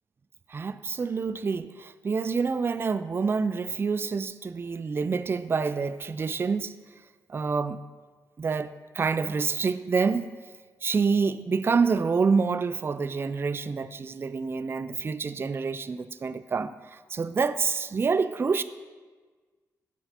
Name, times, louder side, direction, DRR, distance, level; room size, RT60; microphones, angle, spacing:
voice 1, 0.5-6.7 7.3-7.8 8.4-10.3 10.8-18.6, right 5 dB, 35° right, 13 dB, 0.3 m, -27 dB
7.4 x 5.2 x 5.7 m, 1.4 s
cardioid pair, 70°, 7 cm